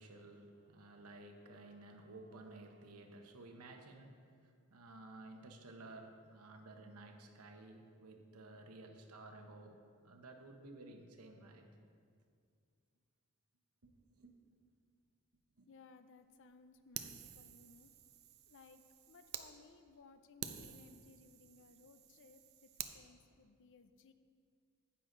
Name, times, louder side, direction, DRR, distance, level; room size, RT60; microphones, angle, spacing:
voice 1, 0.0-11.6 13.8-14.3 15.6-15.7, right 2 dB, 85° right, 4 dB, 1.0 m, -54 dB
voice 2, 15.7-17.9 18.5-24.1, left 4 dB, 55° left, 10 dB, 0.5 m, -62 dB
Fire, 16.9-19.5 19.9-20.0 20.4-23.0, right 9 dB, 45° right, 0.5 m, -49 dB
9.7 x 8.0 x 3.9 m, 2.2 s
head